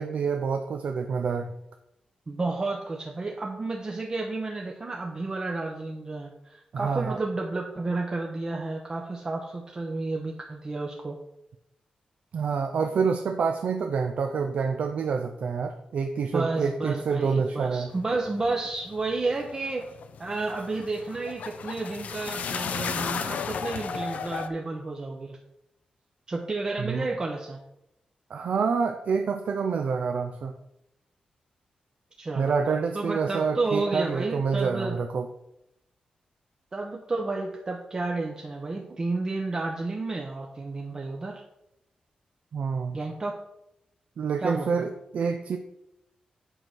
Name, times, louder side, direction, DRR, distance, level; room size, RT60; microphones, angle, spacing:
voice 1, 0.0-1.5 6.7-7.2 12.3-17.9 26.8-27.1 28.3-30.5 32.4-35.3 42.5-43.0 44.2-45.6, right 5 dB, 65° right, 5 dB, 0.6 m, -27 dB
voice 2, 2.3-11.2 16.3-19.9 20.2-25.4 26.3-27.6 32.2-35.0 36.7-41.4 42.9-43.4 44.4-44.9, right 3 dB, 30° right, 0 dB, 0.9 m, -31 dB
sound 1, 17.9-24.5, left 6 dB, 80° left, 0.6 m, -35 dB
7.9 x 4.7 x 5.9 m, 0.84 s
wide cardioid pair, 130°, 3 cm